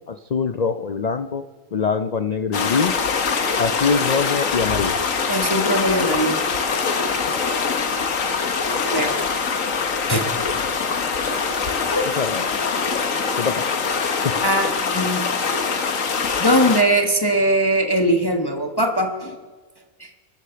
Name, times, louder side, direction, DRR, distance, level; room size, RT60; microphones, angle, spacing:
voice 1, 0.1-1.4 1.7-3.0 3.6-5.0 12.2-12.5 13.4-13.7 14.2-14.4, left 5 dB, 90° left, 9 dB, 0.3 m, -23 dB
sound 1, 2.5-16.8, left 5 dB, 70° left, 1.6 m, -23 dB
voice 2, 5.3-6.4 8.9-9.1 10.1-10.3 11.9-12.1 14.4-15.3 16.4-19.4 20.0-20.1, right 1 dB, 20° left, 3 dB, 1.0 m, -20 dB
25.0 x 8.3 x 6.8 m, 1.4 s
omnidirectional pair, 1.5 m